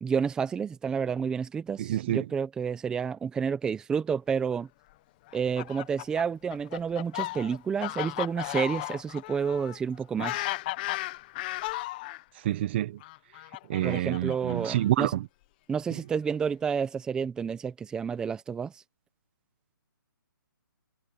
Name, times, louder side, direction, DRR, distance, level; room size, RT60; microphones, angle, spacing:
voice 1, 0.0-4.7 5.3-10.5 13.8-15.1 15.7-18.8, right 6 dB, 5° right, 0.8 m, -30 dB
voice 2, 1.8-2.3 12.4-13.0 13.7-15.3 15.9-16.0, right 13 dB, 30° right, 1.3 m, -28 dB
Fowl, 5.3-12.2 13.0-15.0, left 19 dB, 25° left, 1.0 m, -35 dB
hypercardioid pair, 160°, 11 cm